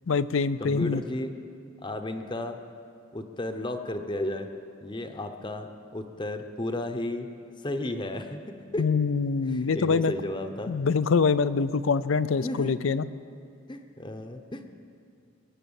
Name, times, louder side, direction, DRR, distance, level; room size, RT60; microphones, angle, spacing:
voice 1, 0.1-1.0 8.8-10.1 10.7-13.1, left 5 dB, 75° left, 14 dB, 0.5 m, -24 dB
voice 2, 0.6-1.3 1.8-2.6 3.1-4.5 4.8-7.3 7.6-8.9 9.5-10.7 12.4-12.7 13.7-14.7, left 1 dB, 25° left, 6 dB, 0.8 m, -33 dB
21.5 x 9.0 x 7.1 m, 2.4 s
head